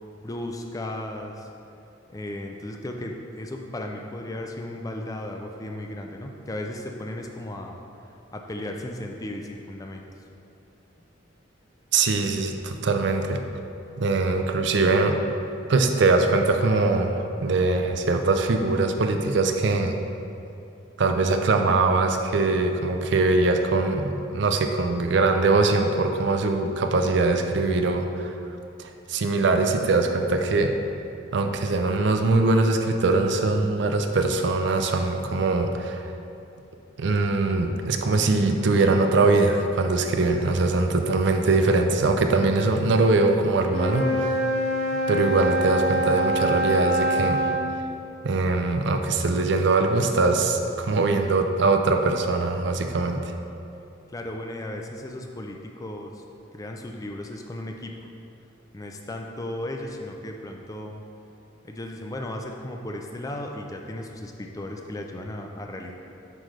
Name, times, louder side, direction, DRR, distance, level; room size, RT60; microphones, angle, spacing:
voice 1, 0.0-1.5 2.1-7.8 8.3-10.1 54.1-56.2 56.5-57.9 58.7-61.0 61.6-65.9, left 1 dB, 15° left, 2 dB, 0.4 m, -35 dB
voice 2, 11.9-13.4 14.0-15.2 15.7-19.9 21.0-28.3 29.1-30.7 31.3-36.0 37.0-44.3 45.1-47.4 48.2-53.3, right 3 dB, 60° right, 5 dB, 0.4 m, -22 dB
Wind instrument woodwind instrument, 43.6-47.6, right 1 dB, 30° left, 0.9 m, -25 dB
7.7 x 5.0 x 3.2 m, 2.7 s
head